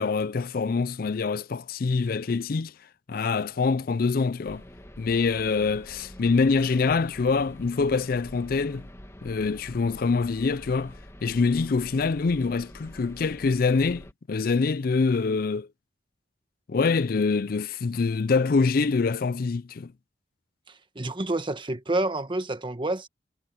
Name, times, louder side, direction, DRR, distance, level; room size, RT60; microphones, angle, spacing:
voice 1, 0.0-2.7 3.1-4.6 5.0-8.9 9.2-10.9 11.2-15.7 16.7-19.9, left 4 dB, 55° left, 0.4 m, -25 dB
sound 1, 4.4-14.1, equal, 15° left, 2.2 m, -46 dB
voice 2, 20.7-23.1, right 2 dB, 30° right, 1.3 m, -29 dB
head